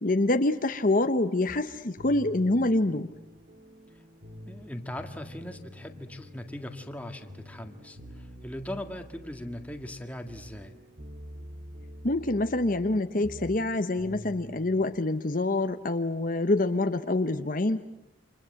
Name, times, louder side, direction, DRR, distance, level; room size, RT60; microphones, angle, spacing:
voice 1, 0.0-3.1 12.0-17.8, left 2 dB, 45° left, 7 dB, 0.9 m, -26 dB
sound 1, 1.5-14.9, equal, 55° right, 2.5 m, -47 dB
voice 2, 4.5-10.8, left 1 dB, 10° left, 5 dB, 1.8 m, -39 dB
29.0 x 26.5 x 7.7 m, 0.90 s
head